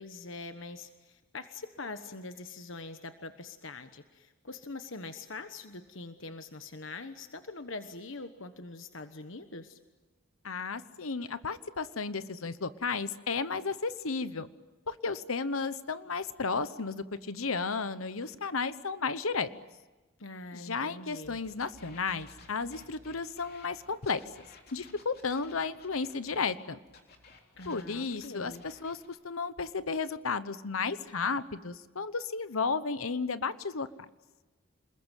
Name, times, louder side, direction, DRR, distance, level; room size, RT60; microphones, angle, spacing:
voice 1, 0.0-9.8 20.2-21.4 27.6-28.6, left 3 dB, 65° left, 9 dB, 1.2 m, -43 dB
voice 2, 10.4-14.5 14.9-19.5 20.5-24.2 24.7-26.8 27.6-33.9, left 4 dB, 80° left, 13 dB, 1.1 m, -33 dB
sound 1, 21.2-26.6 26.9-29.1, left 3 dB, 45° left, 3.6 m, -56 dB
28.0 x 21.0 x 9.2 m, 1.2 s
head